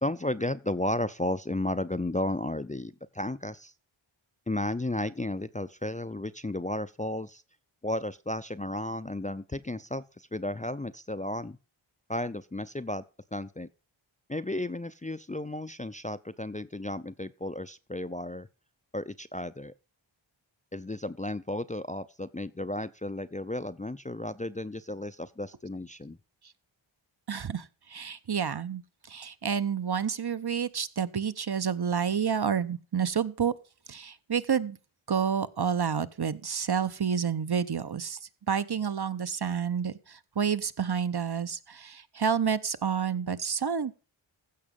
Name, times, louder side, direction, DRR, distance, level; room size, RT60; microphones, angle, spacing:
voice 1, 0.0-3.7 4.5-7.4 7.8-11.6 12.1-13.0 13.3-13.7 14.3-18.5 18.9-19.7 20.7-26.2, left 1 dB, 15° left, 0.5 m, -33 dB
voice 2, 27.3-28.8 29.1-33.5 33.9-34.8 35.1-38.2 38.5-44.0, right 7 dB, 50° right, 0.9 m, -29 dB
15.5 x 6.1 x 5.3 m
wide cardioid pair, 75°, 49 cm